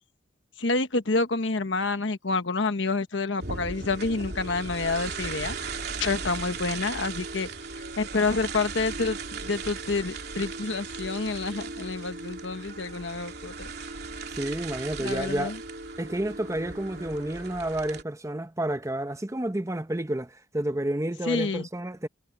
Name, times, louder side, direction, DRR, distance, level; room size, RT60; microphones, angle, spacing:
voice 1, 0.6-5.6 6.0-7.5 8.0-13.7 15.0-15.6 21.3-21.7, left 3 dB, 70° left, 1.2 m, -28 dB
sound 1, 3.4-18.0, right 4 dB, 55° right, 3.4 m, -37 dB
voice 2, 14.3-15.5 16.0-22.1, right 1 dB, 15° right, 0.8 m, -30 dB
head